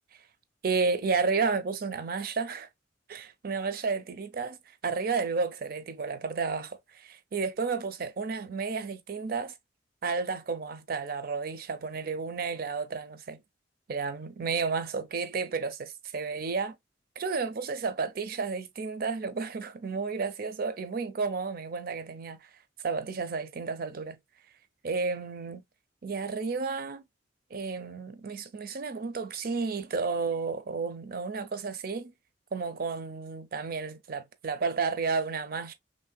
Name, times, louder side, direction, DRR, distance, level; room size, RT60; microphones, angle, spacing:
voice 1, 0.6-2.7 3.1-4.6 4.8-9.5 10.0-13.4 13.9-16.8 17.2-22.5 22.8-24.2 24.8-25.6 26.0-27.0 27.5-32.1 32.5-35.7, right 4 dB, 55° right, 0.5 m, -32 dB
3.1 x 2.6 x 2.2 m
head